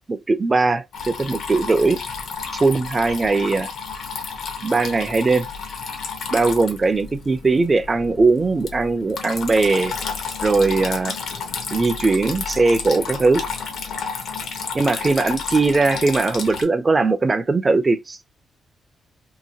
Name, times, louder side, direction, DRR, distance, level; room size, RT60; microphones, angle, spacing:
voice 1, 0.1-2.0 2.5-3.7 4.6-5.5 6.3-9.9 10.4-11.1 11.7-13.4 14.7-18.3, right 3 dB, 25° right, 0.5 m, -19 dB
Water tap faucet / Trickle dribble, 0.9-16.6, left 5 dB, 70° left, 0.9 m, -31 dB
2.9 x 2.7 x 2.7 m
cardioid pair, 120°, 0 cm